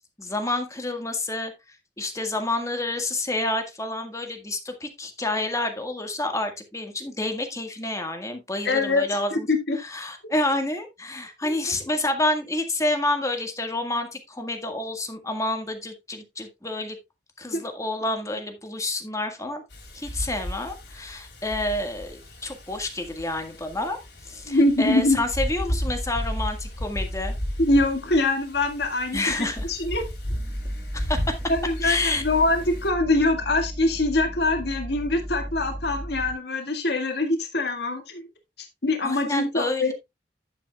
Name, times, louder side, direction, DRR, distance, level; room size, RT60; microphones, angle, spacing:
voice 1, 0.2-9.5 9.8-17.0 17.4-19.6 19.9-27.4 29.1-29.7 30.9-31.3 31.8-32.2 39.0-39.9, left 2 dB, 20° left, 1.8 m, -29 dB
voice 2, 8.6-9.0 9.3-9.8 11.4-11.5 17.5-17.6 24.5-25.2 27.6-30.1 31.5-38.3 38.6-39.9, left 2 dB, 65° left, 2.0 m, -24 dB
Wind, 19.7-32.9, equal, 85° left, 3.7 m, -34 dB
sound 1, 30.3-36.3, equal, 40° right, 1.7 m, -35 dB
10.5 x 9.4 x 2.4 m
head